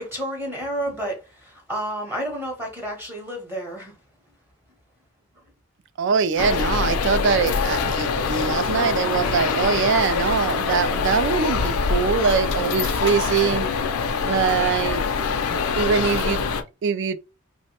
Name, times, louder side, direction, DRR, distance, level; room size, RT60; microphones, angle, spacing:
voice 1, 0.0-3.9, right 1 dB, 10° right, 0.7 m, -30 dB
voice 2, 6.0-13.7 14.2-15.0 15.5-16.4 16.8-17.2, right 6 dB, 55° right, 0.3 m, -23 dB
sound 1, 6.4-16.6, left 5 dB, 85° left, 0.4 m, -24 dB
3.1 x 2.1 x 2.8 m
head